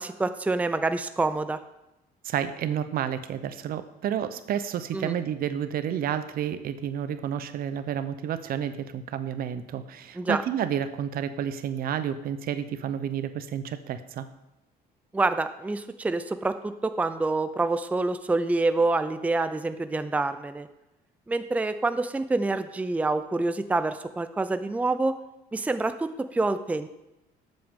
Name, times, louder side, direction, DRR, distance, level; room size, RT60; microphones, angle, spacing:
voice 1, 0.0-1.6 4.9-5.1 10.2-10.4 15.1-20.7 21.3-25.1 25.5-26.9, right 3 dB, 10° right, 10 dB, 0.5 m, -27 dB
voice 2, 2.2-14.3, right 9 dB, 60° right, 12 dB, 0.7 m, -30 dB
12.0 x 7.8 x 3.7 m, 0.93 s
cardioid pair, 110°, 17 cm